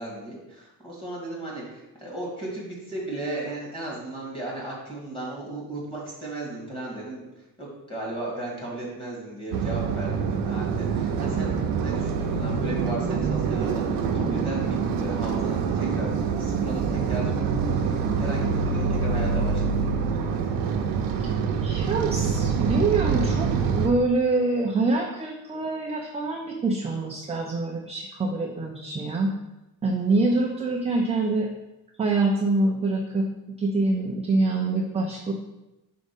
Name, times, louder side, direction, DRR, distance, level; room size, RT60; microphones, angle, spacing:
voice 1, 0.0-7.2 7.6-17.5 17.8-19.9, right 1 dB, 15° left, -3 dB, 2.1 m, -35 dB
sound 1, 9.5-23.9, right 5 dB, 70° right, 0.8 m, -25 dB
voice 2, 21.6-29.3 29.8-31.5 32.0-33.3 33.6-35.3, right 3 dB, 15° right, 0 dB, 0.5 m, -25 dB
5.2 x 3.8 x 5.4 m, 0.96 s
cardioid pair, 145°, 36 cm